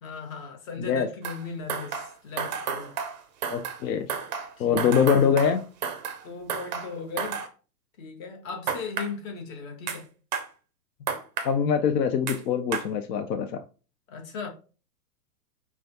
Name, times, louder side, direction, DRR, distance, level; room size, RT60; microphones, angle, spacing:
voice 1, 0.0-2.9 4.6-5.3 6.2-7.4 8.0-10.1 14.1-14.5, left 5 dB, 55° left, 1.4 m, -37 dB
sound 1, 1.2-1.4 1.7-3.8 4.1-6.2 6.5-7.5 8.7-9.1 9.9-10.0 10.3-10.5 11.1-11.5 12.3-12.4 12.7-12.9, right 7 dB, 30° right, 0.4 m, -32 dB
voice 2, 3.5-4.1 4.6-5.6 11.4-13.6, left 7 dB, 75° left, 0.6 m, -23 dB
4.9 x 2.3 x 2.7 m
hypercardioid pair, 125°, 49 cm